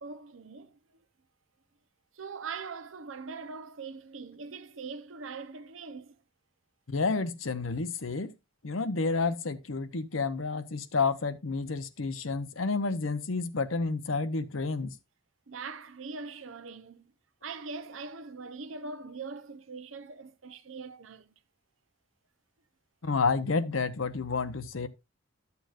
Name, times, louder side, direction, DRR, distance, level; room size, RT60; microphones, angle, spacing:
voice 1, 0.0-0.8 2.1-6.2 15.5-17.1 17.4-21.3, right 4 dB, 80° right, 0.8 m, -42 dB
voice 2, 6.9-8.3 8.6-14.9 23.0-24.9, left 4 dB, 85° left, 0.9 m, -30 dB
12.5 x 7.0 x 2.5 m
head